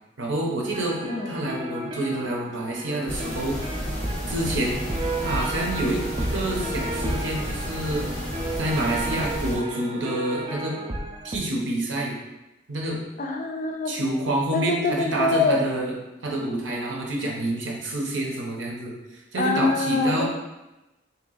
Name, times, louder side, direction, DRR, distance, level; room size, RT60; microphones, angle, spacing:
voice 1, 0.2-3.6 4.3-4.9 5.2-8.0 8.6-10.8 11.2-12.2 12.7-13.0 13.8-15.9 16.2-20.2, right 1 dB, 75° right, -1 dB, 0.9 m, -28 dB
sound 1, 0.7-11.4, right 1 dB, 25° right, 0.4 m, -33 dB
voice 2, 1.1-1.4 13.2-13.9 14.5-15.6 19.4-20.2, left 3 dB, 40° left, 3 dB, 0.4 m, -24 dB
sound 2, 3.1-9.6, equal, 5° left, 0.7 m, -32 dB
3.4 x 3.0 x 3.9 m, 0.99 s
head